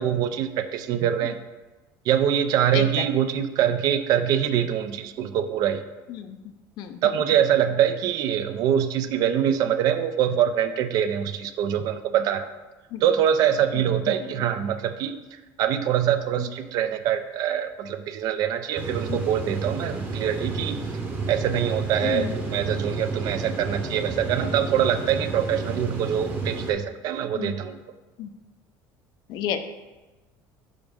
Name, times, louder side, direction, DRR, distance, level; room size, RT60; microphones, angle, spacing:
voice 1, 0.0-1.3 2.1-5.8 7.0-12.5 13.0-15.1 15.6-20.8 21.3-27.8, right 9 dB, 55° right, 10 dB, 0.5 m, -24 dB
voice 2, 13.7-14.2 16.4-16.5 19.1-19.2 21.5-21.6 22.0-22.4 27.3-27.5 28.2-28.3 29.3-29.6, left 10 dB, 60° left, 9 dB, 0.5 m, -31 dB
sound 1, 18.8-26.7, right 3 dB, 25° right, 0.9 m, -31 dB
5.1 x 5.0 x 5.1 m, 1.2 s
cardioid pair, 150°, 8 cm